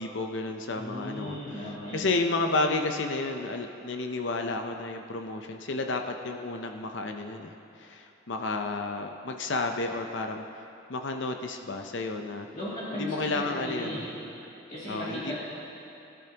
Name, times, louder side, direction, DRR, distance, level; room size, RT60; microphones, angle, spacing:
voice 1, 0.0-1.4 1.9-10.4 10.9-12.5 12.9-14.0 14.9-15.4, left 3 dB, 70° left, 4 dB, 0.7 m, -31 dB
voice 2, 0.7-2.1 12.5-14.1 14.7-15.4, left 1 dB, 40° left, -11 dB, 2.5 m, -36 dB
20.5 x 12.0 x 2.9 m, 2.8 s
head